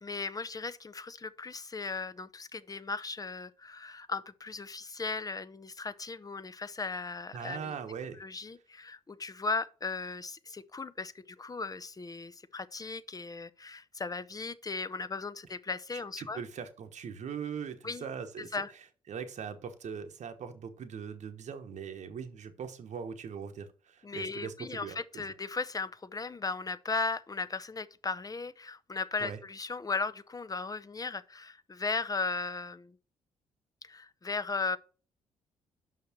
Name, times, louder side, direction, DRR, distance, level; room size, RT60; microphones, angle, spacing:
voice 1, 0.0-7.7 8.2-16.4 17.8-18.0 18.5-18.7 24.0-33.0 33.8-34.8, left 4 dB, 25° left, 0.7 m, -37 dB
voice 2, 7.3-8.2 15.9-18.6 19.1-25.2 29.2-29.4, right 7 dB, 55° right, 1.1 m, -41 dB
5.8 x 5.7 x 5.9 m
hypercardioid pair, 45°, 14 cm